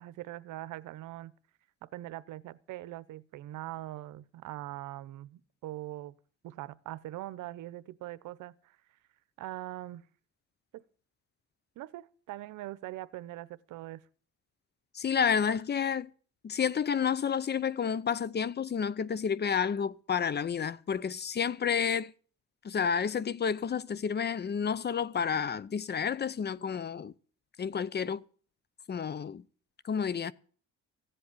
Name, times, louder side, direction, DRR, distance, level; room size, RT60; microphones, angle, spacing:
voice 1, 0.0-1.3 1.8-6.1 6.4-8.6 9.4-10.0 10.7-10.8 11.8-14.0, right 15 dB, 90° right, 0.8 m, -42 dB
voice 2, 14.9-16.1 16.4-22.1 22.6-27.1 27.6-28.2 28.9-29.4 29.8-30.3, left 7 dB, 35° left, 0.6 m, -30 dB
15.0 x 7.9 x 8.3 m
cardioid pair, 90°, 30 cm